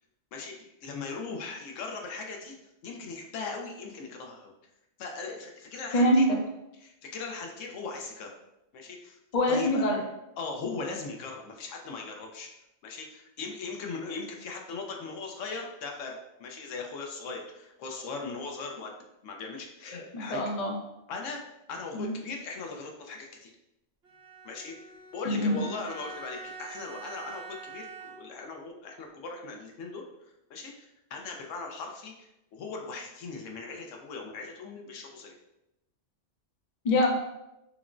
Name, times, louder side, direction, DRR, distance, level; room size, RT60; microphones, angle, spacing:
voice 1, 0.3-2.6 2.8-4.5 5.0-6.3 6.8-8.3 8.7-9.2 9.5-9.8 10.4-12.5 12.8-18.9 19.2-20.4 21.1-21.4 21.7-23.5 24.4-35.3, left 4 dB, 80° left, 2 dB, 1.0 m, -39 dB
voice 2, 9.3-10.0 20.1-20.7 21.9-22.1 25.2-25.6 36.8-37.1, left 1 dB, 45° left, 0 dB, 0.6 m, -24 dB
Bowed string instrument, 24.0-28.5, right 5 dB, 60° right, 0.9 m, -45 dB
5.9 x 2.1 x 2.5 m, 0.89 s
omnidirectional pair, 1.3 m